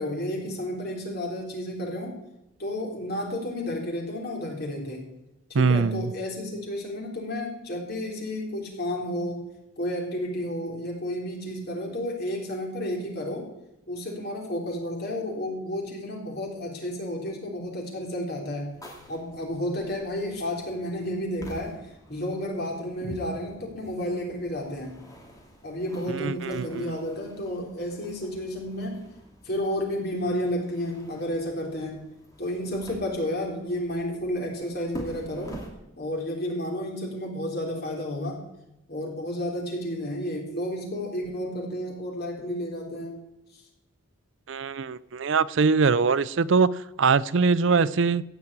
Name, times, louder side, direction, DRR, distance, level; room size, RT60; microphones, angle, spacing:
voice 1, 0.0-2.2 2.6-5.1 5.5-9.5 9.8-13.5 13.9-18.8 19.1-21.8 22.1-25.0 25.6-29.0 29.4-32.0 32.4-35.6 36.0-38.4 38.9-43.2 43.5-43.6, left 1 dB, 50° left, 3.6 m, -31 dB
voice 2, 5.5-6.1 26.1-26.9 44.5-48.2, right 5 dB, 65° right, 0.5 m, -23 dB
sound 1, 18.7-35.7, equal, 15° left, 2.5 m, -48 dB
sound 2, 23.0-27.0, equal, 35° left, 3.8 m, -48 dB
16.0 x 6.0 x 8.6 m
head